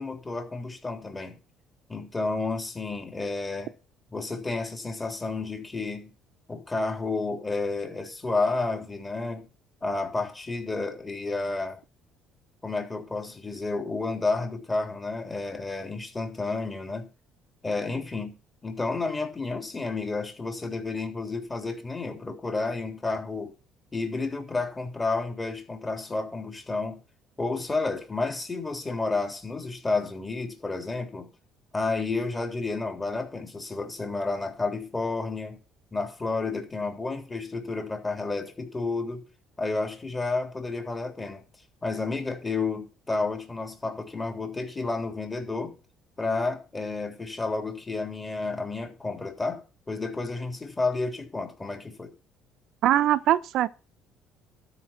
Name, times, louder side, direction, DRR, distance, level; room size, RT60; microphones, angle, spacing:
voice 1, 0.0-1.4 1.9-3.7 4.1-6.1 6.5-9.5 9.8-11.8 12.6-17.1 17.6-23.5 23.9-27.0 27.4-31.3 31.7-35.6 35.9-39.3 39.6-41.4 41.8-45.7 46.2-52.1, left 3 dB, 20° left, 3.4 m, -31 dB
voice 2, 52.8-53.7, right 12 dB, 65° right, 0.9 m, -22 dB
12.5 x 5.6 x 7.3 m
cardioid pair, 110°, 0 cm